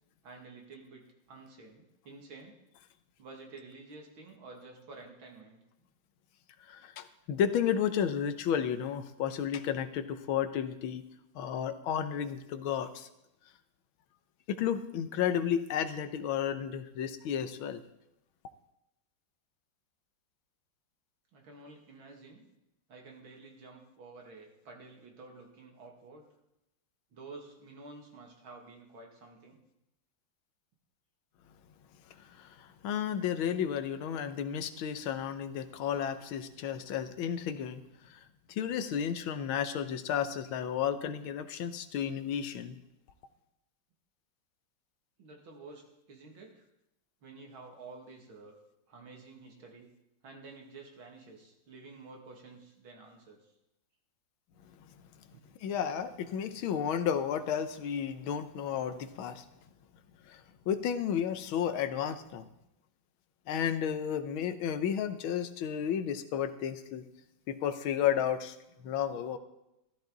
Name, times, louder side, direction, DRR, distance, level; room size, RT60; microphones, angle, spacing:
voice 1, 0.2-2.6 3.2-5.6 21.3-22.5 22.9-26.3 27.1-29.6 45.2-46.7 47.2-48.5 48.9-49.9 50.2-53.4 55.3-55.4, right 3 dB, 90° right, 1 dB, 3.0 m, -51 dB
voice 2, 6.6-11.0 11.3-13.1 14.5-17.8 32.2-38.2 38.5-42.8 54.8-54.9 55.6-59.4 60.2-62.4 63.5-67.0 67.5-69.4, left 8 dB, 85° left, 10 dB, 1.7 m, -32 dB
13.5 x 13.0 x 4.0 m, 0.88 s
omnidirectional pair, 2.2 m